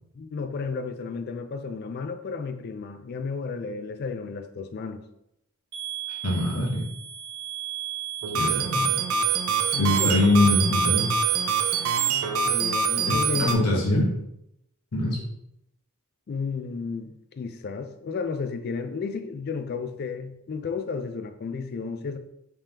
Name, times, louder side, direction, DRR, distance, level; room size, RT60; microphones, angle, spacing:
voice 1, 0.1-5.0 9.7-10.5 12.4-14.1 16.3-22.2, left 5 dB, 45° left, 0.3 m, -33 dB
sound 1, 5.7-12.3, right 11 dB, 45° right, 0.8 m, -36 dB
voice 2, 6.1-6.8 8.3-8.9 9.8-11.1 13.4-14.0 14.9-15.2, left 1 dB, 90° left, 1.0 m, -23 dB
sound 2, 8.2-13.5, right 6 dB, 70° right, 0.4 m, -25 dB
3.5 x 3.3 x 2.8 m
head